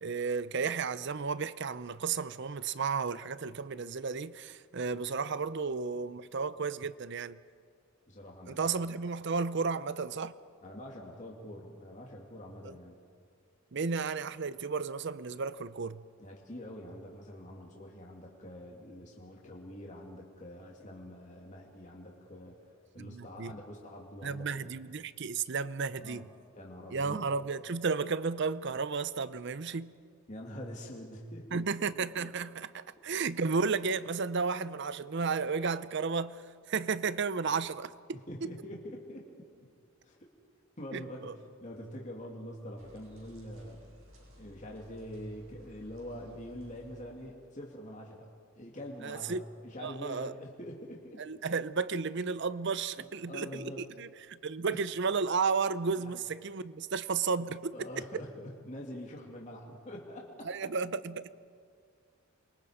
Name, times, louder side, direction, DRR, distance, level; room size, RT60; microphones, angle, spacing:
voice 1, 0.0-7.4 8.5-10.3 12.6-12.7 13.7-16.0 23.0-23.5 24.2-26.3 26.9-29.9 31.5-38.2 40.9-41.3 49.0-49.4 49.8-50.3 51.2-57.9 60.4-61.3, right 5 dB, 60° right, 0.7 m, -33 dB
voice 2, 8.1-8.8 10.6-13.0 16.2-22.6 22.9-24.6 25.9-26.3 26.6-27.2 30.3-31.6 32.2-32.3 38.3-39.3 40.0-40.3 40.8-41.3 41.6-43.8 44.4-48.3 48.6-51.3 53.0-53.8 56.0-56.1 57.7-60.5 61.1-61.3, equal, 35° left, 2.6 m, -45 dB
sound 1, 42.8-47.4, left 1 dB, 80° right, 7.3 m, -56 dB
28.5 x 23.5 x 5.1 m
head